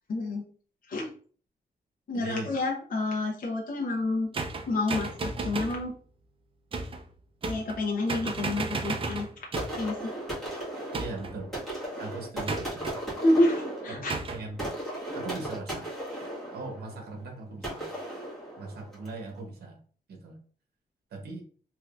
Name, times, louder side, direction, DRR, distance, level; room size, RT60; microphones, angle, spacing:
voice 1, 0.1-0.4 0.9-1.1 2.1-4.3 4.7-6.0 7.4-9.3 9.8-10.1 13.2-14.1, left 2 dB, 60° left, -1 dB, 0.9 m, -28 dB
voice 2, 2.1-2.5 11.0-11.5 12.0-12.9 13.9-14.7 15.1-15.9 16.5-17.9 18.6-19.8 20.1-20.4 21.1-21.4, right 3 dB, 85° right, 2 dB, 0.9 m, -39 dB
sound 1, 4.3-5.8 6.7-7.0 7.4-7.8 8.1-9.9 10.9-11.4 12.5-13.0 14.1-14.4, right 3 dB, 35° right, 0.4 m, -33 dB
sound 2, 9.6-19.2, right 1 dB, ahead, 1.6 m, -37 dB
3.4 x 2.9 x 2.4 m, 0.43 s
wide cardioid pair, 125°, 16 cm